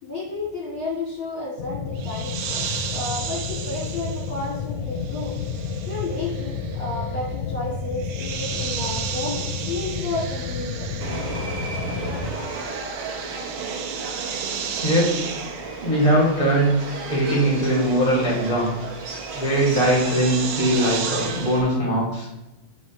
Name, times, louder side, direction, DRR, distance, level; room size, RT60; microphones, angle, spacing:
voice 1, 0.0-2.7 2.9-5.3 5.9-11.0 12.1-12.3, left 2 dB, 50° left, -6 dB, 2.0 m, -32 dB
sound 1, 1.6-12.3, left 5 dB, 80° left, 1.9 m, -31 dB
sound 2, 2.0-11.7 11.9-21.7, right 7 dB, 85° right, 1.4 m, -35 dB
Subway metro underground, 11.0-21.6, right 4 dB, 55° right, 1.7 m, -34 dB
voice 2, 14.8-15.2 15.8-16.7 17.1-18.7 19.3-22.3, right 1 dB, 15° left, -4 dB, 1.9 m, -20 dB
9.4 x 4.7 x 3.1 m, 0.96 s
omnidirectional pair, 3.5 m